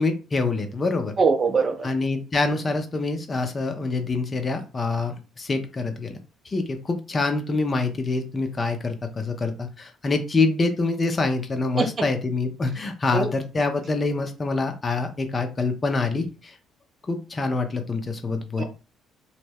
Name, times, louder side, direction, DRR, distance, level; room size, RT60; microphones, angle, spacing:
voice 1, 0.0-1.1 1.8-6.2 6.5-16.6 17.1-18.6, left 3 dB, 30° left, 0.5 m, -26 dB
voice 2, 1.2-1.9 11.8-12.0 13.1-13.3 18.6-18.7, right 4 dB, 40° right, 0.5 m, -22 dB
2.1 x 2.1 x 3.3 m
figure-of-eight pair, 50°, 0 cm